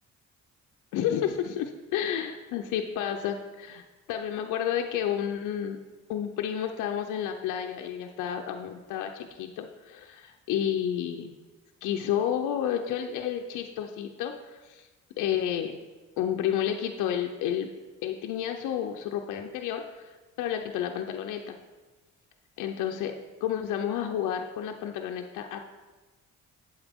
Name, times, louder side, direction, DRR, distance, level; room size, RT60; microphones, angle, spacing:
voice 1, 0.9-5.8 6.1-11.3 11.8-14.9 15.2-15.7 16.2-17.7 18.0-20.1 20.4-21.6 22.6-23.1 23.4-25.6, left 9 dB, 90° left, 3 dB, 0.6 m, -31 dB
8.0 x 7.9 x 3.6 m, 1.2 s
cardioid pair, 90°, 30 cm